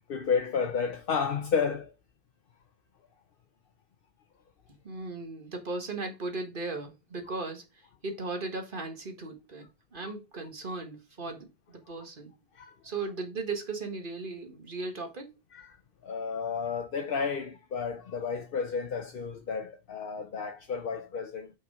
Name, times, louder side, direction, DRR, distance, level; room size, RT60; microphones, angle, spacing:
voice 1, 0.1-1.9 10.0-10.1 12.5-12.7 15.5-15.8 16.0-21.5, left 6 dB, 60° left, 1.0 m, -31 dB
voice 2, 4.8-7.6 8.0-12.3 12.8-15.3, right 3 dB, 50° right, 1.7 m, -37 dB
5.6 x 4.6 x 4.8 m
omnidirectional pair, 1.1 m